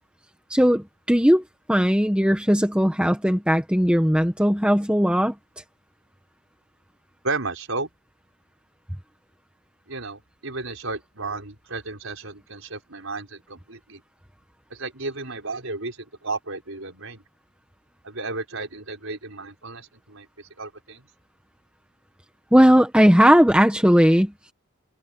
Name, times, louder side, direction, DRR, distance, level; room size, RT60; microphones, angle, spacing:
voice 1, 0.5-1.4 1.7-5.3 22.5-24.3, equal, 5° right, 1.2 m, -18 dB
voice 2, 7.2-7.9 9.9-14.0 14.7-17.2 18.0-20.3 20.6-21.0, right 3 dB, 65° right, 5.8 m, -33 dB
head